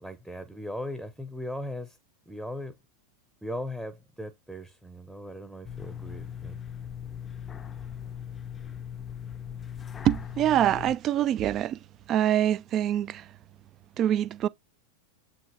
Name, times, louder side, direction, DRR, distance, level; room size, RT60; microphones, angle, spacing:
voice 1, 0.0-2.0 2.3-2.7 3.4-6.6, left 1 dB, 5° right, 1.0 m, -38 dB
sound 1, 5.6-11.0, left 8 dB, 20° left, 0.5 m, -39 dB
voice 2, 10.0-11.8 12.1-13.2 14.0-14.5, right 11 dB, 30° right, 0.4 m, -25 dB
7.8 x 2.9 x 4.5 m
figure-of-eight pair, 90°, 0 cm